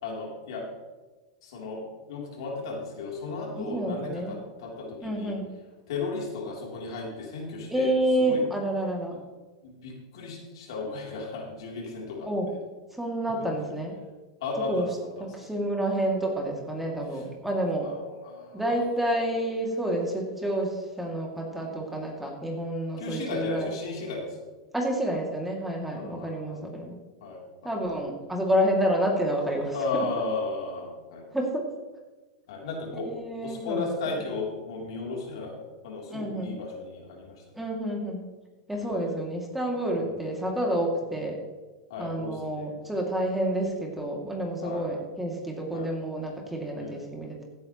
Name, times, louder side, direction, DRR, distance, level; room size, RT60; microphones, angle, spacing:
voice 1, 0.0-0.6 1.4-5.4 5.9-8.4 9.6-12.6 14.4-15.5 17.1-17.2 17.8-18.8 23.0-24.5 25.9-26.7 27.2-27.8 29.7-31.3 32.5-33.1 33.4-37.4 38.8-39.1 40.0-40.1 41.9-42.7 44.6-45.0 45.7-45.9 46.8-46.9, left 3 dB, 75° left, -1 dB, 3.4 m, -35 dB
voice 2, 3.6-4.3 5.0-5.4 7.7-9.2 12.2-12.5 12.9-14.0 14.7-14.9 15.3-17.9 18.5-23.7 24.7-27.0 27.6-30.0 31.3-31.6 32.9-34.2 36.1-36.5 37.6-38.2 38.7-41.4 42.0-47.5, right 1 dB, 5° right, 0 dB, 2.5 m, -29 dB
15.5 x 9.3 x 3.1 m, 1.2 s
hypercardioid pair, 115°, 3 cm